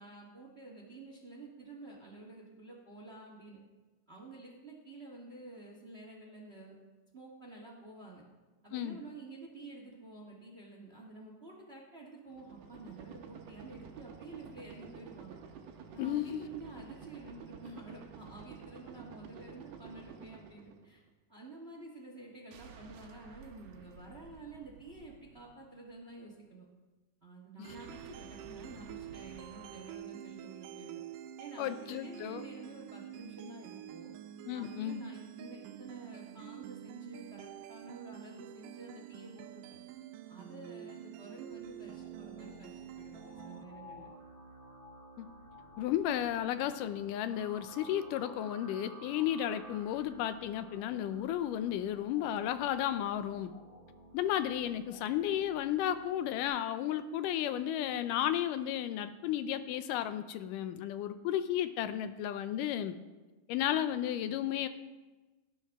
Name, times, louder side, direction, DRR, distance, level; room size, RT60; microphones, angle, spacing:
voice 1, 0.0-3.6 4.1-6.7 7.1-8.2 8.6-15.4 15.9-21.0 21.3-26.6 27.2-31.0 31.4-34.1 34.5-39.8 40.3-44.1, right 2 dB, 30° right, -1 dB, 1.2 m, -50 dB
sound 1, 12.3-21.1 22.5-25.9 27.7-29.9, right 7 dB, 65° right, 1.8 m, -52 dB
voice 2, 16.0-16.5 27.6-27.7 31.6-32.4 34.5-35.0 45.2-45.3 45.8-53.5 54.1-63.0 63.5-64.7, left 11 dB, 90° left, 11 dB, 2.3 m, -33 dB
sound 2, 27.6-43.6, right 12 dB, 85° right, 2.1 m, -48 dB
sound 3, 41.5-56.5, right 1 dB, 40° left, 3.5 m, -54 dB
18.0 x 10.5 x 3.6 m, 1.2 s
omnidirectional pair, 3.7 m